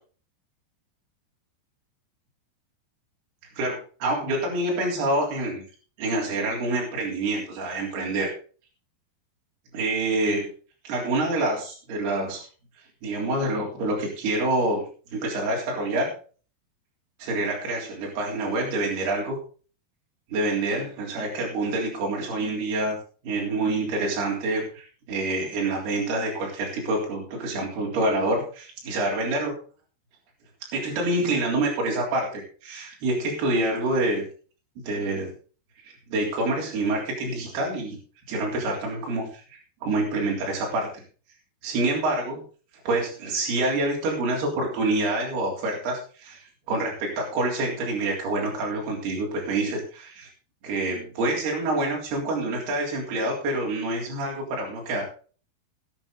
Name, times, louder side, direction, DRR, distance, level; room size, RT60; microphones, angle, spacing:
voice 1, 3.6-5.7 6.0-8.3 9.7-10.5 10.9-12.4 13.0-16.1 17.2-19.4 20.3-29.6 30.7-34.2 34.8-35.3 35.8-38.0 38.3-40.9 41.6-42.4 42.9-50.3 50.6-55.0, right 2 dB, 60° right, -1 dB, 5.4 m, -27 dB
20.0 x 7.2 x 4.0 m, 0.38 s
omnidirectional pair, 5.2 m